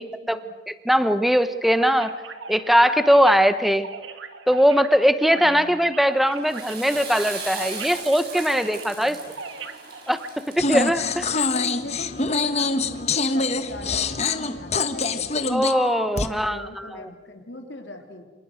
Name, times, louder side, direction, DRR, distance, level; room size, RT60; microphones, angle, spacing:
voice 1, 0.0-0.5 5.3-5.9 8.9-9.3 11.0-11.2 11.5-15.3 16.1-18.3, left 1 dB, 70° left, 4 dB, 3.2 m, -39 dB
voice 2, 0.7-2.1 2.5-3.9 4.5-9.2 10.1-10.2 10.5-11.3 15.5-16.9, equal, ahead, 11 dB, 0.9 m, -20 dB
sound 1, 1.8-10.3, right 4 dB, 85° right, 1.8 m, -39 dB
Water / Toilet flush, 6.3-11.5, right 4 dB, 55° right, 6.9 m, -38 dB
sound 2, 10.6-16.3, left 3 dB, 35° left, 1.2 m, -25 dB
28.5 x 27.0 x 6.4 m, 1.3 s
head